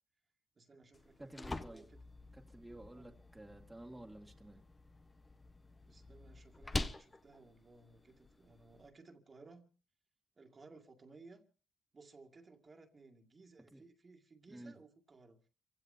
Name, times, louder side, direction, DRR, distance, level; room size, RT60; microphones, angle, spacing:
voice 1, 0.6-1.3 1.6-2.0 2.9-3.1 5.9-9.7 10.4-11.4 11.9-15.4, right 3 dB, 35° right, 2.1 m, -59 dB
sound 1, 0.9-8.9, left 2 dB, 20° left, 1.0 m, -46 dB
voice 2, 1.2-1.9 2.3-4.6 13.7-13.8 14.5-14.7, right 1 dB, 10° right, 2.0 m, -52 dB
29.5 x 16.0 x 2.7 m
cardioid pair, 90°, 0 cm